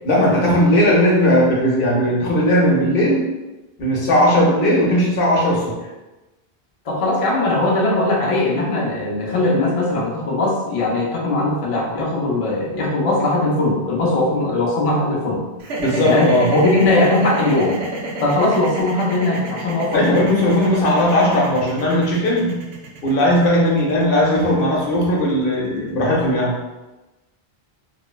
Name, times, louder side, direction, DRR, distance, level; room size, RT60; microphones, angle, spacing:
voice 1, 0.0-3.2 3.8-5.7 15.8-16.5 19.9-22.5 23.0-26.5, left 1 dB, 65° left, -3 dB, 0.8 m, -17 dB
voice 2, 6.9-15.4 16.0-17.8 18.2-20.2, left 2 dB, 45° left, -3 dB, 0.5 m, -19 dB
sound 1, 15.6-25.8, right 2 dB, 90° right, 0.8 m, -29 dB
3.0 x 2.0 x 2.2 m, 1.1 s
omnidirectional pair, 1.0 m